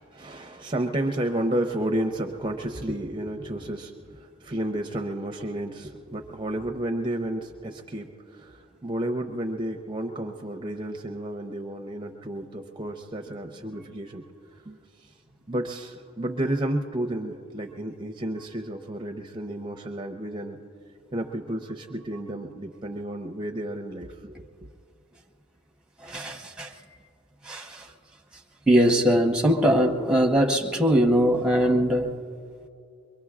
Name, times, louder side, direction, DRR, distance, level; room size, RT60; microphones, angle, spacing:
voice 1, 0.0-14.2 14.6-15.1 15.5-20.6 21.1-24.3, right 1 dB, 25° right, 4 dB, 0.6 m, -31 dB
voice 2, 26.0-26.7 27.5-27.8 28.7-32.1, equal, 5° right, 1 dB, 1.0 m, -21 dB
23.5 x 23.5 x 2.4 m, 2.3 s
head